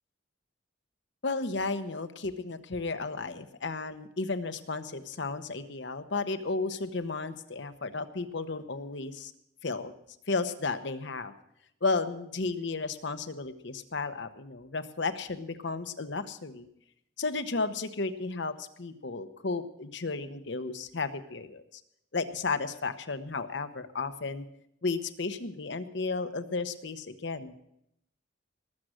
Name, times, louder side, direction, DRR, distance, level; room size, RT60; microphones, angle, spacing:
voice 1, 1.2-9.3 9.6-9.9 10.3-11.3 11.8-16.7 17.2-21.8 22.1-24.4 24.8-27.5, left 3 dB, 65° left, 10 dB, 0.9 m, -33 dB
19.5 x 7.5 x 6.3 m, 0.77 s
head